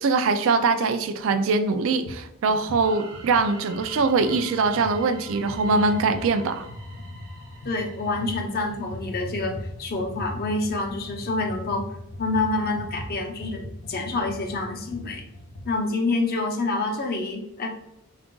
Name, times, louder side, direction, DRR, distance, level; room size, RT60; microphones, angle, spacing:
voice 1, 0.0-6.7, right 4 dB, 60° right, 0.3 m, -22 dB
sound 1, 2.1-2.2 2.5-15.8, left 1 dB, 85° left, 0.6 m, -39 dB
sound 2, 2.8-9.4, right 2 dB, 85° right, 0.9 m, -46 dB
voice 2, 7.6-11.9 12.2-15.2 15.6-17.7, left 2 dB, 45° left, 0.6 m, -27 dB
3.7 x 2.4 x 3.7 m
head